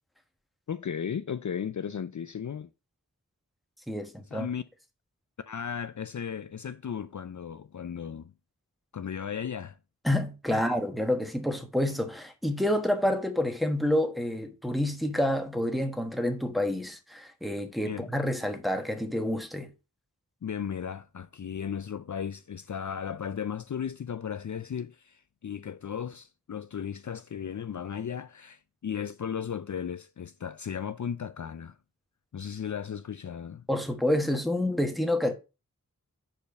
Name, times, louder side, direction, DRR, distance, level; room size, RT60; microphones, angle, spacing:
voice 1, 0.7-2.7 4.3-4.6 5.4-8.3 8.9-9.8 10.5-10.6 17.9-18.1 20.4-31.8 32.3-33.6, left 8 dB, 60° left, 0.4 m, -35 dB
voice 2, 3.9-4.5 10.0-19.7 33.7-35.3, left 1 dB, ahead, 1.2 m, -28 dB
5.1 x 4.5 x 5.7 m
wide cardioid pair, 40°, 34 cm